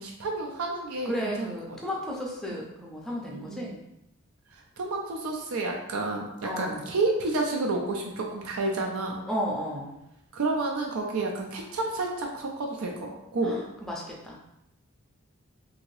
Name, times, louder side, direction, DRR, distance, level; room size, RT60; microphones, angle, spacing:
voice 1, 0.0-1.8 3.4-3.7 4.5-9.2 10.3-13.5, right 2 dB, 80° right, 1 dB, 0.4 m, -30 dB
voice 2, 1.1-3.8 6.4-6.9 9.3-9.9 13.4-14.4, equal, ahead, -3 dB, 0.4 m, -33 dB
2.8 x 2.7 x 3.1 m, 0.86 s
head